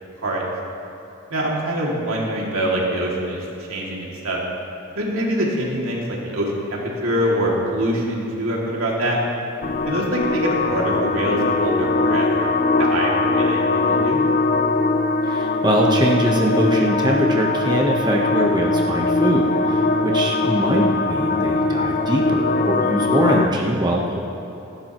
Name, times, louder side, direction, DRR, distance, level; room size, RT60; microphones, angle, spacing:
voice 1, 1.3-3.4 3.7-4.4 5.0-9.2 9.9-12.5 12.8-14.2, right 1 dB, 85° right, -3 dB, 2.6 m, -24 dB
sound 1, 9.6-23.5, left 3 dB, 40° left, 0.5 m, -21 dB
voice 2, 15.2-24.2, right 1 dB, 20° right, -1 dB, 1.1 m, -22 dB
17.0 x 15.0 x 3.1 m, 2.8 s
head